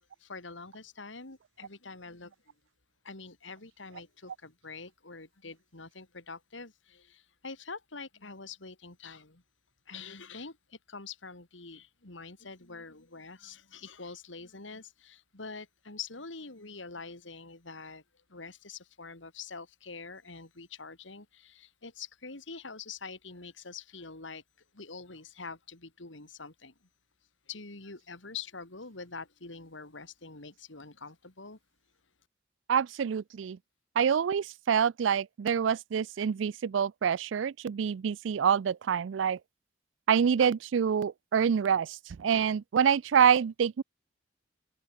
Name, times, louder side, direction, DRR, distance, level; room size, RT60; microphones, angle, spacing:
voice 1, 0.0-2.3 3.0-9.4 9.9-18.0 18.3-24.4 24.7-26.7 27.5-31.6, left 4 dB, 85° left, 3.1 m, -45 dB
voice 2, 32.7-33.6 34.0-39.4 40.1-43.8, right 7 dB, 85° right, 0.4 m, -26 dB
head